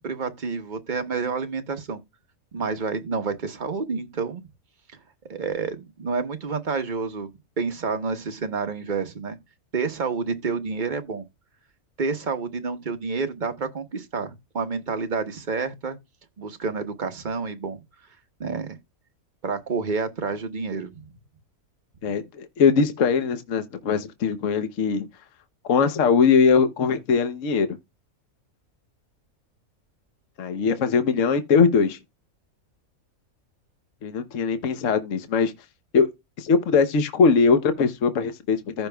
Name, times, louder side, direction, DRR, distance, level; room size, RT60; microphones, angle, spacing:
voice 1, 0.0-2.0 2.5-4.4 5.3-7.3 7.6-9.4 9.7-11.2 12.0-16.0 16.4-17.8 18.4-18.8 19.4-21.0, right 4 dB, 35° right, 1.0 m, -29 dB
voice 2, 22.0-25.1 25.7-27.7 30.4-32.0 34.0-35.5 35.9-36.1 36.4-38.9, left 5 dB, 65° left, 1.2 m, -21 dB
14.5 x 5.0 x 2.3 m
omnidirectional pair, 1.5 m